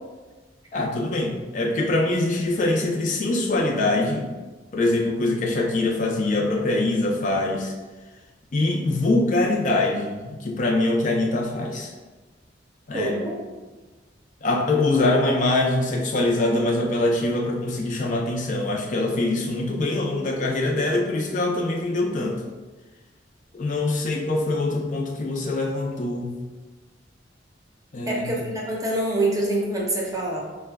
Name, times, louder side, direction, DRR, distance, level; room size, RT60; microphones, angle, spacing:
voice 1, 0.7-4.3 4.7-7.7 8.5-11.9 12.9-13.2 14.4-22.4 23.5-26.4 27.9-28.4, left 2 dB, 45° left, 0 dB, 0.5 m, -23 dB
voice 2, 12.9-13.4 28.1-30.4, right 1 dB, 20° right, -3 dB, 0.7 m, -25 dB
4.8 x 2.1 x 3.4 m, 1.3 s
head